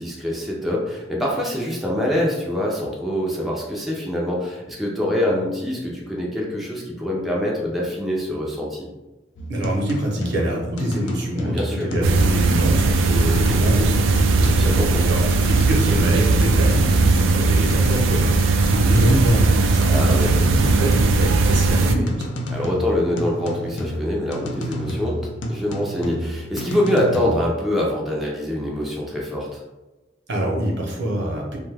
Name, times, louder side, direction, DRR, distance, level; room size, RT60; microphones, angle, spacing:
voice 1, 0.0-8.9 11.4-11.9 13.5-13.6 14.6-15.3 19.9-20.3 22.5-25.2 25.5-29.6, left 1 dB, ahead, -4 dB, 0.4 m, -25 dB
sound 1, 9.4-27.5, equal, 70° left, 0.4 m, -30 dB
voice 2, 9.5-14.6 15.1-15.2 15.5-22.4 30.3-31.6, right 1 dB, 65° right, -1 dB, 0.7 m, -25 dB
sound 2, 12.0-21.9, right 3 dB, 85° right, 0.3 m, -18 dB
2.6 x 2.2 x 3.2 m, 1.1 s
head